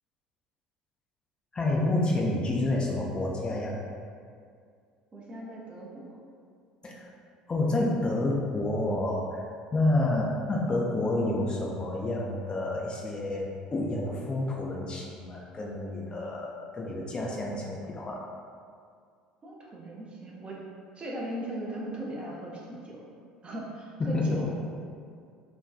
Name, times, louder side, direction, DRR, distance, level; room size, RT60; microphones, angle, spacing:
voice 1, 1.5-3.8 6.8-7.1 7.5-9.4 9.7-18.2 24.0-24.4, left 2 dB, 25° left, -3 dB, 0.4 m, -29 dB
voice 2, 5.1-6.2 19.4-20.6 21.0-23.0 23.4-24.5, right 1 dB, 30° right, -3 dB, 0.5 m, -38 dB
2.5 x 2.2 x 2.4 m, 2.2 s
figure-of-eight pair, 65°, 4 cm